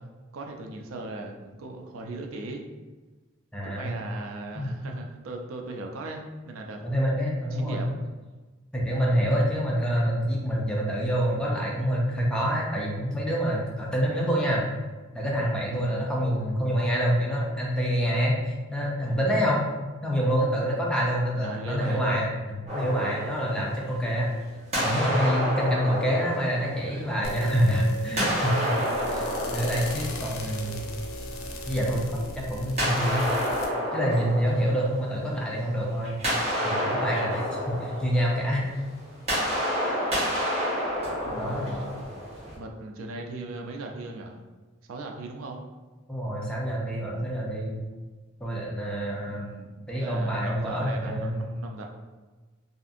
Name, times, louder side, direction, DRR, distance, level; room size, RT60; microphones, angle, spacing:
voice 1, 0.3-2.6 3.6-6.8 7.5-7.9 15.7-16.0 21.4-22.0 41.2-42.1 42.5-44.4 44.9-45.6 49.2-51.9, right 2 dB, 75° right, 2 dB, 0.4 m, -38 dB
voice 2, 3.5-4.0 4.5-4.7 6.8-7.8 8.7-14.6 15.1-19.7 20.0-24.3 24.8-28.6 29.0-30.8 31.7-33.2 33.9-36.2 36.6-38.7 41.4-41.8 46.1-47.8 48.4-49.5 49.9-51.4, equal, 5° left, -4 dB, 0.4 m, -26 dB
sound 1, 22.7-24.3 24.7-27.5 28.1-30.9 32.8-35.5 35.9-42.5, equal, 30° right, 1.0 m, -30 dB
sound 2, 27.2-33.7, equal, 85° left, 0.5 m, -37 dB
2.6 x 2.4 x 2.4 m, 1.3 s
head